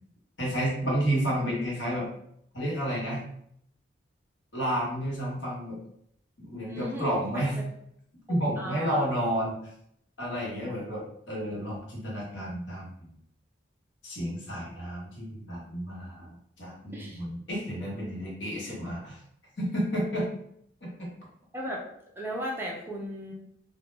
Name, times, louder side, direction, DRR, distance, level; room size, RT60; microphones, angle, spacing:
voice 1, 0.4-2.1 2.5-3.2 4.5-5.8 6.4-7.6 8.3-9.6 10.2-13.1 14.0-16.3 16.6-19.2 19.6-20.3 20.8-20.9, equal, 75° left, -4 dB, 1.0 m, -31 dB
voice 2, 6.7-7.1 7.3-7.4 8.3-9.0 16.9-17.2 21.5-21.8 22.2-23.3, equal, 10° right, -2 dB, 0.4 m, -36 dB
2.1 x 2.1 x 3.1 m, 0.71 s
head